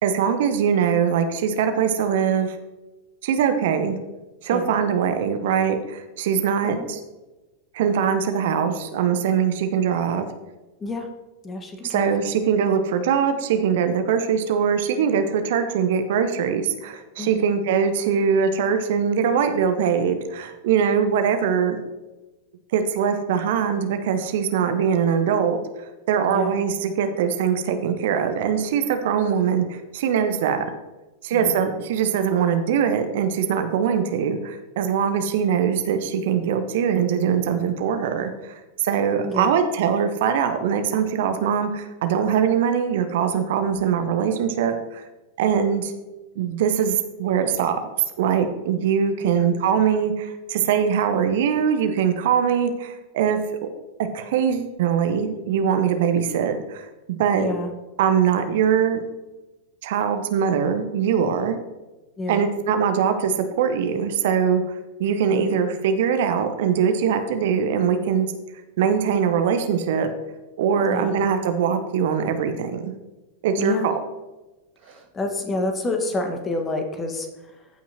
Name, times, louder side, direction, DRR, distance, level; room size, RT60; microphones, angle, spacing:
voice 1, 0.0-2.6 3.2-4.0 4.4-7.0 7.7-10.3 11.8-21.8 22.7-25.6 26.1-30.6 31.2-45.0 45.4-45.9 46.4-47.8 48.2-53.7 54.1-57.5 58.0-59.0 59.8-61.6 62.3-64.6 65.0-68.3 68.8-70.1 70.6-72.9 73.4-73.9, right 7 dB, 55° right, 8 dB, 0.8 m, -22 dB
voice 2, 11.4-12.1 17.2-17.5 26.2-26.6 31.3-31.6 39.2-39.6 43.7-43.8 49.3-49.5 57.3-57.7 62.2-62.5 65.2-65.5 70.8-71.3 73.6-73.9 74.8-77.7, left 2 dB, 20° left, 4 dB, 1.4 m, -29 dB
15.0 x 5.7 x 2.9 m, 1.1 s
figure-of-eight pair, 90°, 0 cm